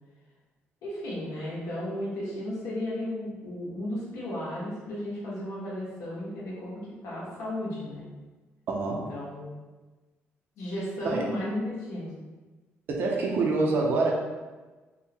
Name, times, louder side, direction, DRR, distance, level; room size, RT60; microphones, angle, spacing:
voice 1, 0.8-8.1 8.9-9.5 10.6-12.1, left 1 dB, 85° left, -7 dB, 1.2 m, -34 dB
voice 2, 8.7-9.1 11.0-11.2 12.9-14.1, right 3 dB, 50° right, -1 dB, 0.6 m, -26 dB
3.7 x 2.1 x 4.2 m, 1.2 s
cardioid pair, 155°, 5 cm